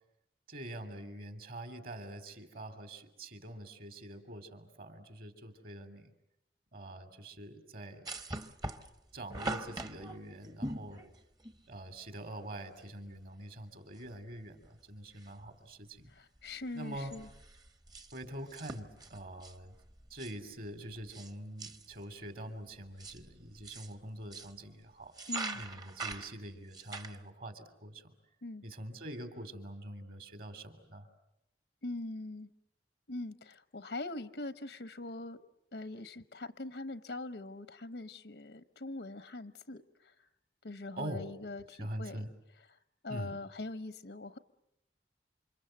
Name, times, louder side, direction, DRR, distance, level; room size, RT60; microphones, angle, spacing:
voice 1, 0.5-6.1 6.7-8.0 9.1-11.0 11.7-16.1 16.7-17.1 18.1-19.7 20.1-25.1 25.5-28.1 28.6-31.1 41.0-41.3 41.8-42.3 43.1-43.3, right 1 dB, 55° right, 8 dB, 3.1 m, -44 dB
sound 1, 8.0-11.6 12.8-12.9 13.1-13.2 13.9-14.3 14.6-15.5 15.8-16.1 16.4-21.3 21.6-22.0 22.7-24.6 25.0-27.2, right 2 dB, 25° right, 1.0 m, -43 dB
voice 2, 16.1-17.3 25.3-25.6 28.4-28.6 31.8-32.5 33.1-35.4 35.7-40.1 40.6-42.2 42.7-44.4, left 2 dB, 80° left, 12 dB, 1.0 m, -42 dB
28.5 x 26.5 x 7.8 m, 0.84 s
head